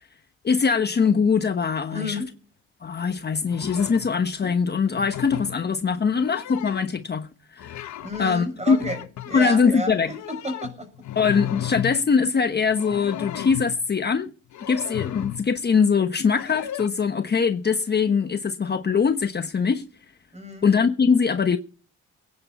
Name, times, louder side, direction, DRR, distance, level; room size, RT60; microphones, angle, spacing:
voice 1, 0.4-2.2 2.8-7.9 8.2-8.8 9.3-10.1 11.1-14.3 14.7-19.8 20.6-21.6, left 5 dB, 35° left, 1.2 m, -22 dB
voice 2, 1.9-2.3 8.0-10.9 20.3-20.7, left 1 dB, 20° right, 6.4 m, -32 dB
sound 1, 3.4-4.1 4.9-5.6 6.1-7.0 7.6-8.2 8.6-9.4 10.0-12.0 12.7-13.8 14.5-15.5 16.3-16.9, left 12 dB, 70° left, 1.2 m, -34 dB
21.5 x 9.5 x 4.3 m
cardioid pair, 90°, 30 cm